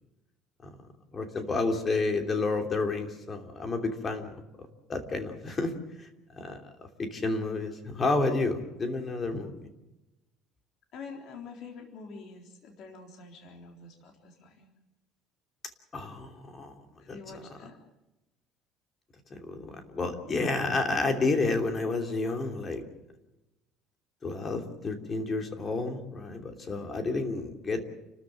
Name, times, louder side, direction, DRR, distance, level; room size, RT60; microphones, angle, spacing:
voice 1, 1.1-4.3 4.9-6.6 7.0-9.7 15.9-16.7 17.1-17.2 19.3-22.8 24.2-27.8, left 3 dB, 25° left, 5 dB, 3.0 m, -30 dB
voice 2, 10.9-14.7 17.0-17.8, left 4 dB, 50° left, 2 dB, 3.7 m, -46 dB
29.5 x 13.5 x 8.9 m, 1.0 s
cardioid pair, 160°, 0 cm